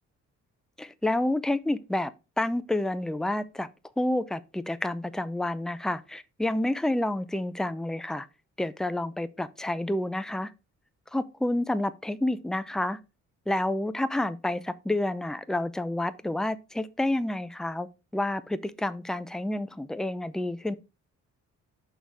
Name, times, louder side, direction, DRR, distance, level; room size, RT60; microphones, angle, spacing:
voice 1, 0.8-2.1 2.4-3.7 4.0-8.3 8.6-10.5 11.1-13.0 13.5-17.9 18.1-20.7, left 1 dB, ahead, 0.5 m, -29 dB
6.1 x 4.0 x 4.7 m
cardioid pair, 90°, 30 cm